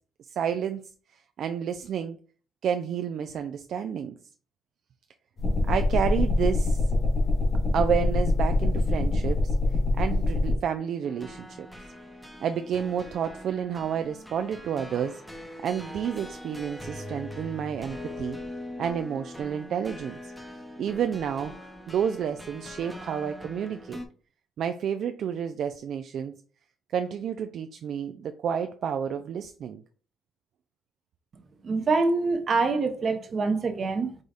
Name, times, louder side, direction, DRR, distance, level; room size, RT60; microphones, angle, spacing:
voice 1, 0.3-0.8 1.4-2.2 2.6-4.2 5.7-6.8 7.7-9.6 10.0-11.7 12.4-15.2 15.6-18.4 18.8-20.3 20.8-21.5 21.9-24.0 24.6-26.3 26.9-29.8, right 8 dB, 70° right, 0.3 m, -30 dB
sound 1, 5.4-10.5, left 2 dB, 55° left, 1.5 m, -24 dB
sound 2, 11.0-24.1, left 1 dB, ahead, 0.8 m, -42 dB
voice 2, 31.6-34.2, right 3 dB, 45° right, 0.8 m, -25 dB
4.9 x 2.3 x 4.0 m
cardioid pair, 90°, 0 cm